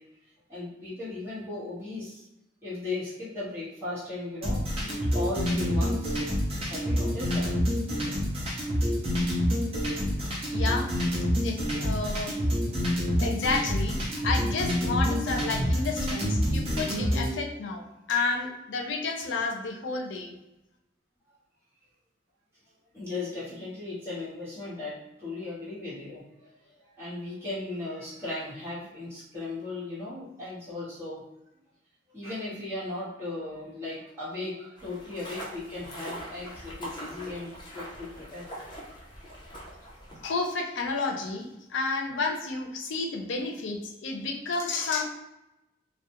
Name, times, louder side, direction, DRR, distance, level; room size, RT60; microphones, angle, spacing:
voice 1, 0.5-2.3 2.6-6.2 6.7-7.5 22.9-26.6 26.8-31.2 32.1-38.5, left 2 dB, 15° right, -11 dB, 1.0 m, -37 dB
sound 1, 4.4-17.3, equal, 30° right, 0.6 m, -27 dB
voice 2, 10.5-10.9 11.4-12.3 13.2-20.4 40.2-45.0, left 3 dB, 85° left, 3 dB, 0.5 m, -31 dB
sound 2, 34.8-40.2, equal, 25° left, 0.5 m, -42 dB
2.3 x 2.0 x 2.8 m, 0.92 s
head